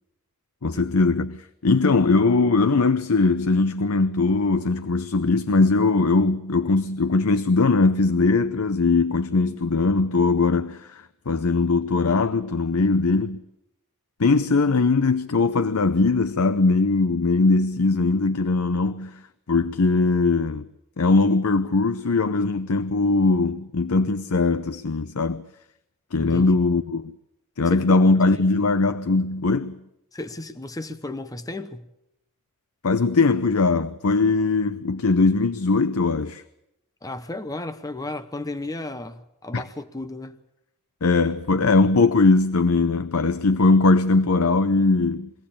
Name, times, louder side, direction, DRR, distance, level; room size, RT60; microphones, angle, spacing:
voice 1, 0.6-13.4 14.2-19.2 19.5-20.7 21.0-25.4 26.1-27.1 27.6-29.8 32.8-36.4 39.5-39.6 41.0-45.3, left 3 dB, 85° left, 0.7 m, -20 dB
voice 2, 26.2-26.5 27.7-27.9 30.1-31.9 37.0-40.4, left 2 dB, 15° left, 0.9 m, -34 dB
23.0 x 17.0 x 8.7 m
head